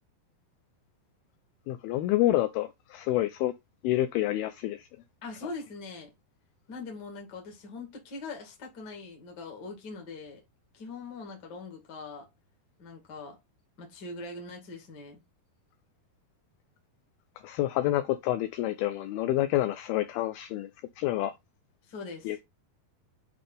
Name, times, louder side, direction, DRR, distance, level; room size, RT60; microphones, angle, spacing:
voice 1, 1.7-3.5 3.8-4.9 17.4-20.7 21.0-21.3 22.2-22.4, left 14 dB, 80° left, 2.3 m, -28 dB
voice 2, 5.2-6.1 6.7-10.4 10.7-12.3 12.8-13.4 13.8-15.2 21.9-22.4, left 3 dB, 35° left, 1.8 m, -42 dB
8.7 x 3.3 x 3.8 m
omnidirectional pair, 4.8 m